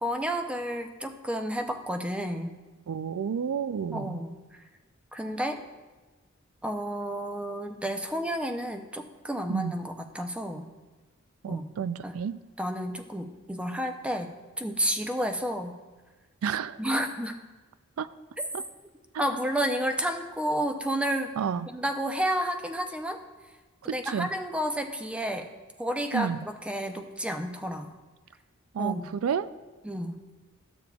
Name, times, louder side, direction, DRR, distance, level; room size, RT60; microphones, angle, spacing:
voice 1, 0.0-2.6 3.9-4.4 5.1-5.6 6.6-10.7 11.5-11.7 12.0-12.1 12.6-15.8 16.8-17.3 18.4-18.5 19.2-21.3 21.7-23.2 23.8-25.5 25.8-27.9 28.8-29.1 29.8-30.2, equal, 5° right, 5 dB, 0.5 m, -31 dB
voice 2, 2.9-4.2 9.5-9.7 11.4-12.4 16.4-16.8 18.0-18.1 18.5-18.6 19.1-19.2 21.4-21.7 23.8-24.3 26.1-26.4 28.7-29.5, right 7 dB, 80° right, 15 dB, 0.3 m, -30 dB
13.0 x 6.9 x 2.3 m, 1.3 s
head